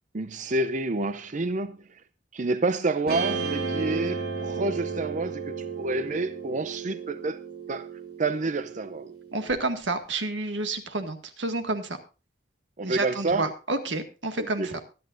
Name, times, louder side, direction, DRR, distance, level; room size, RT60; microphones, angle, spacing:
voice 1, 0.1-2.0 2.3-7.4 7.7-7.9 8.2-9.1 12.8-13.5 14.4-14.8, right 2 dB, 45° right, 0.6 m, -29 dB
Guitar, 3.1-9.5, right 5 dB, 60° right, 3.7 m, -33 dB
voice 2, 9.3-12.0 12.8-14.8, right 2 dB, 90° right, 1.9 m, -30 dB
23.5 x 8.8 x 2.6 m
head